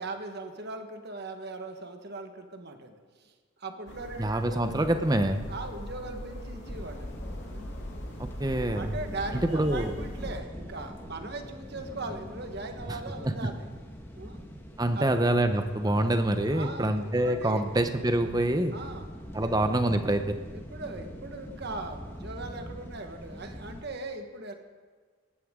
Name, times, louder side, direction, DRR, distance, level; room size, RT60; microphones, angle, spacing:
voice 1, 0.0-3.3 3.6-5.0 5.5-7.1 7.5-7.8 8.4-13.7 14.2-14.4 14.9-15.2 15.9-16.1 16.4-17.7 18.7-19.1 19.4-19.7 20.5-24.5, right 2 dB, 50° right, 5 dB, 1.4 m, -40 dB
sound 1, 3.9-10.4, left 1 dB, 55° left, 2.2 m, -40 dB
voice 2, 4.2-5.4 8.2-9.0 9.4-9.9 13.2-13.3 14.8-18.8 19.3-20.3, right 1 dB, 20° right, 8 dB, 0.8 m, -26 dB
sound 2, 6.6-23.8, equal, 10° left, 1.4 m, -44 dB
18.5 x 14.5 x 3.7 m, 1.5 s
head